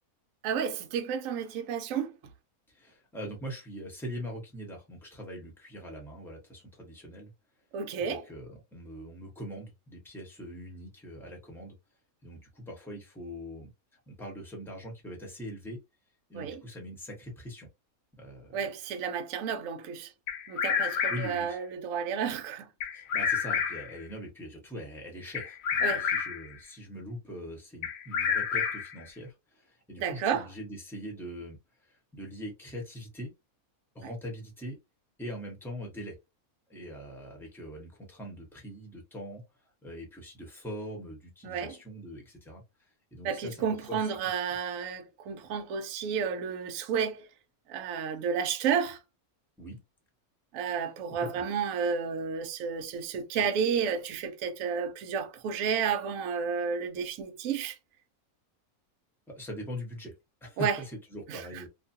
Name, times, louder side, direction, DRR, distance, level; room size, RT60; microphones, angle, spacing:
voice 1, 0.4-2.1 7.7-8.3 16.3-16.6 18.5-20.1 20.5-22.7 25.8-26.1 30.0-30.5 41.4-41.7 43.2-47.3 47.7-49.0 50.5-57.8 60.6-60.8 61.3-61.4, right 6 dB, 70° right, 0.9 m, -31 dB
voice 2, 2.7-7.3 8.0-11.8 12.2-13.7 14.1-15.8 16.3-17.7 18.2-18.6 20.8-21.6 22.9-31.6 32.1-33.3 33.9-34.8 35.2-36.2 36.7-39.4 39.8-42.6 43.1-44.1 49.6-49.8 51.2-51.3 59.3-60.1 60.4-61.7, equal, ahead, 0.8 m, -42 dB
Bird vocalization bird call bird song, 20.3-21.4 22.8-24.0 25.3-26.5 27.8-29.0, left 7 dB, 60° left, 0.7 m, -29 dB
2.6 x 2.3 x 2.6 m
omnidirectional pair, 1.6 m